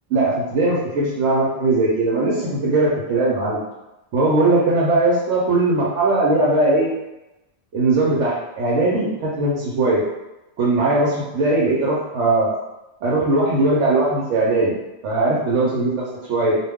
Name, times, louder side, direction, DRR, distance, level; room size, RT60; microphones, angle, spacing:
voice 1, 0.1-3.6 4.1-6.9 7.7-10.0 10.6-12.5 13.0-14.7 15.0-15.9 16.3-16.6, right 2 dB, 80° right, -6 dB, 1.0 m, -19 dB
2.3 x 2.2 x 3.4 m, 0.96 s
omnidirectional pair, 1.3 m